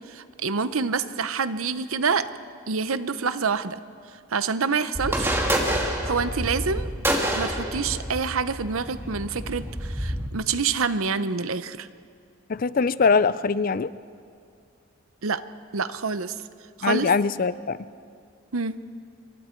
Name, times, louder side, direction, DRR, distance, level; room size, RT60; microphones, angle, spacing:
voice 1, 0.1-2.3 2.7-3.8 4.3-5.4 6.0-6.9 7.4-11.9 15.2-15.4 15.7-16.4 16.8-17.1 18.5-18.8, right 5 dB, 75° right, 13 dB, 0.8 m, -27 dB
sound 1, 4.9-10.3, right 1 dB, 10° right, 2.0 m, -28 dB
voice 2, 12.5-13.9 16.8-17.8, left 5 dB, 40° left, 16 dB, 0.4 m, -22 dB
27.5 x 23.5 x 4.6 m, 2.4 s
head